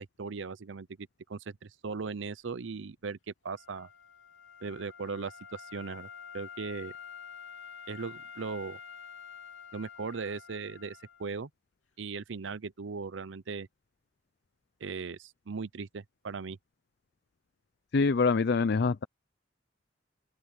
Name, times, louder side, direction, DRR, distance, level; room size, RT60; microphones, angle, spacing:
voice 1, 0.0-3.9 4.6-6.1 6.3-6.9 7.9-8.8 9.7-11.5 12.0-13.7 14.8-16.6, right 4 dB, 70° right, 0.6 m, -38 dB
Wind instrument woodwind instrument, 3.5-11.3, left 7 dB, 90° left, 3.4 m, -48 dB
voice 2, 17.9-19.0, left 4 dB, 55° left, 0.5 m, -25 dB
open air
head